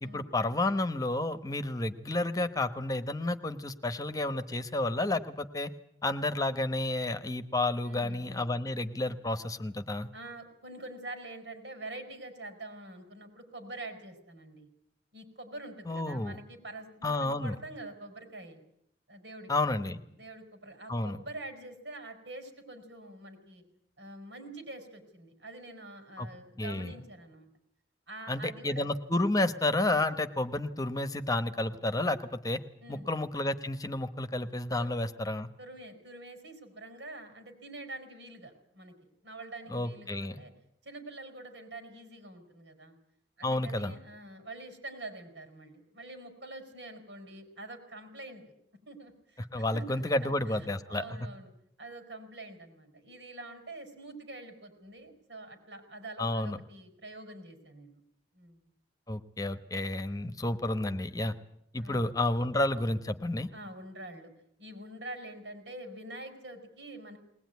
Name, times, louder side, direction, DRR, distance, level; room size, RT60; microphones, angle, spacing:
voice 1, 0.0-5.7 6.0-10.1 15.9-16.4 17.0-17.6 19.5-20.0 20.9-21.2 26.2-26.3 26.6-27.0 28.3-32.6 32.9-35.5 39.7-40.4 43.4-43.9 49.5-51.0 56.2-56.6 59.1-61.3 61.7-63.5, left 2 dB, 20° left, 11 dB, 1.1 m, -31 dB
voice 2, 7.8-8.6 10.1-14.7 15.1-18.6 19.1-19.5 20.2-23.6 24.0-27.5 28.1-28.9 32.8-33.1 34.8-34.9 35.6-38.9 39.2-40.5 40.8-43.0 43.4-48.5 48.9-51.5 51.8-58.0 58.3-58.6 61.8-62.0 63.5-64.3 64.6-67.2, right 2 dB, 90° right, 6 dB, 5.7 m, -46 dB
21.0 x 20.0 x 9.5 m, 0.74 s
head